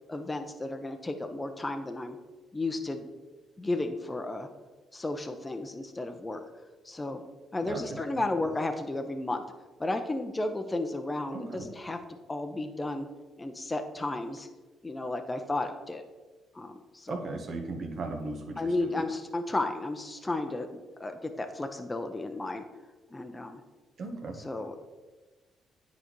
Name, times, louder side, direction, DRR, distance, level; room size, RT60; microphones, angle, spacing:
voice 1, 0.1-2.2 2.5-3.0 3.6-4.5 4.9-6.4 6.8-7.2 7.5-9.4 9.8-12.0 12.3-13.1 13.4-14.5 14.8-16.0 16.5-17.3 18.6-20.7 21.0-22.6 23.1-23.6 24.4-24.7, left 2 dB, 20° left, 5 dB, 0.6 m, -33 dB
voice 2, 7.6-8.2 11.3-11.7 17.1-19.0 24.0-24.4, right 3 dB, 60° right, 4 dB, 1.1 m, -37 dB
10.0 x 4.1 x 3.1 m, 1.3 s
cardioid pair, 90°, 0 cm